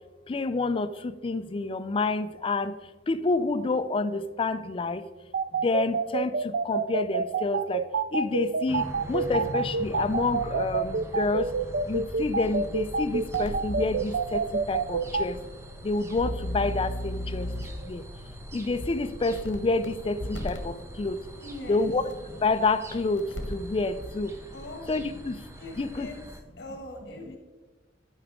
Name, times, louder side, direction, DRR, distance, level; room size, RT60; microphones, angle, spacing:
voice 1, 0.3-2.7 3.1-5.0 5.6-7.9 8.1-11.5 11.9-15.4 15.8-17.5 17.8-18.0 18.5-21.2 21.7-22.0 22.3-24.3 24.9-25.5 25.8-26.1, left 3 dB, 30° left, 12 dB, 0.4 m, -28 dB
sound 1, 5.3-15.2, right 5 dB, 65° right, 0.4 m, -27 dB
sound 2, 8.7-26.4, right 1 dB, 15° right, 0.6 m, -43 dB
sound 3, 13.3-14.0 14.7-14.8 15.2-15.3 16.1-17.8 18.8-18.9 19.3-19.9 20.2-20.6 22.1-22.2 23.2-23.7 24.0-24.1, left 1 dB, 80° left, 1.1 m, -34 dB
voice 2, 21.4-21.9 24.5-24.9 25.6-26.2 26.6-27.4, left 1 dB, 60° left, 2 dB, 2.0 m, -41 dB
11.5 x 4.8 x 3.5 m, 1.2 s
head